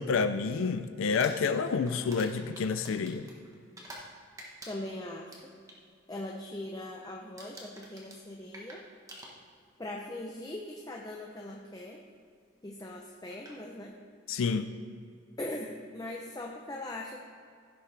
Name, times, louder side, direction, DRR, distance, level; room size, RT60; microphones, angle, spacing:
voice 1, 0.0-3.3 14.3-14.7, left 5 dB, 85° left, 10 dB, 0.4 m, -29 dB
Crumpling crinkling, 1.0-4.1 4.4-5.8 6.2-6.5 6.7-7.1 7.4-9.8 10.7-10.8 12.8-12.9 13.3-13.6, right 1 dB, 15° right, 1.2 m, -48 dB
voice 2, 4.7-5.4 6.1-8.8 9.8-12.0 12.6-13.9 15.4-17.2, left 1 dB, 20° left, 0 dB, 0.6 m, -40 dB
15.5 x 6.6 x 3.3 m, 2.2 s
head